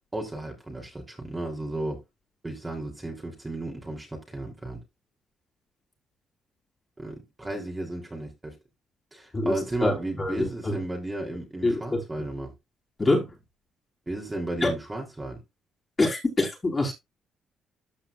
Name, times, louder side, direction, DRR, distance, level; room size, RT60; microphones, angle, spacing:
voice 1, 0.1-2.0 2.4-4.8 7.0-8.5 9.1-12.5 14.1-15.4, right 2 dB, 15° right, 3.3 m, -34 dB
voice 2, 9.3-10.8 11.6-12.0 13.0-13.3 14.6-14.7 16.0-16.9, left 2 dB, 25° left, 3.8 m, -25 dB
14.0 x 5.0 x 2.5 m
cardioid pair, 90°, 0 cm